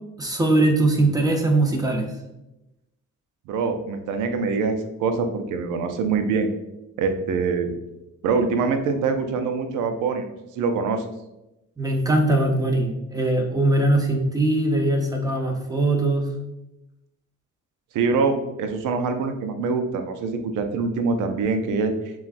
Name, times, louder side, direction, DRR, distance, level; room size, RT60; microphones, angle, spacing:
voice 1, 0.2-2.1 11.8-16.3, right 2 dB, 10° right, 2 dB, 0.8 m, -21 dB
voice 2, 3.5-6.5 7.0-7.7 8.2-10.3 10.6-11.0 17.9-21.9, right 4 dB, 90° right, 7 dB, 0.6 m, -24 dB
7.0 x 2.4 x 2.5 m, 0.94 s
cardioid pair, 90°, 30 cm